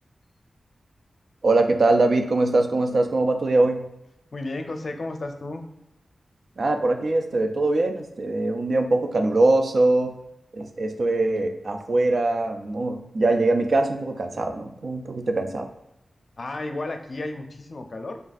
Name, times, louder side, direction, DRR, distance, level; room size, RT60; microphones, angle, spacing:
voice 1, 1.4-3.8 6.6-10.1 10.5-15.7, right 2 dB, 65° right, 6 dB, 0.4 m, -22 dB
voice 2, 4.3-5.6 16.4-18.2, left 2 dB, 55° left, 5 dB, 0.5 m, -33 dB
4.0 x 3.5 x 2.5 m, 0.89 s
cardioid pair, 65°, 0 cm